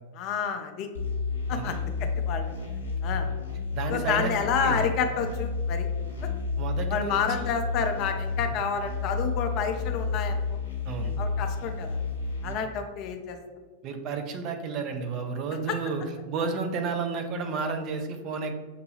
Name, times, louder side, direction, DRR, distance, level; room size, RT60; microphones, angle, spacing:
voice 1, 0.2-0.9 1.5-2.6 3.0-3.3 3.9-5.9 6.9-10.4 11.2-12.0 12.4-13.4, left 6 dB, 40° left, 5 dB, 0.4 m, -29 dB
sound 1, 0.9-12.5, left 4 dB, 80° left, 0.7 m, -31 dB
voice 2, 3.7-4.3 4.6-4.9 6.6-7.5 10.8-11.1 13.8-16.0 16.3-18.5, right 5 dB, 35° right, 5 dB, 0.5 m, -31 dB
6.4 x 2.2 x 3.2 m, 1.4 s
figure-of-eight pair, 90°, 0 cm